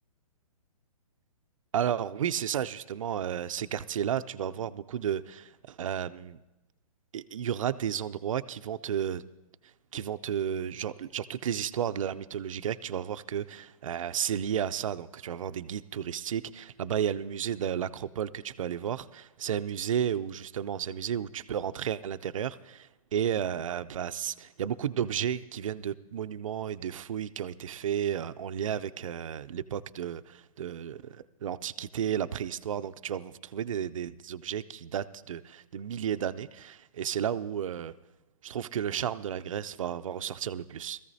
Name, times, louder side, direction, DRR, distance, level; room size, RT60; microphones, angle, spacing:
voice 1, 1.7-6.4 7.1-9.2 9.9-37.9 38.4-41.0, right 9 dB, 60° right, 12 dB, 0.5 m, -33 dB
20.0 x 14.5 x 2.7 m, 1.0 s
hypercardioid pair, 170°, 19 cm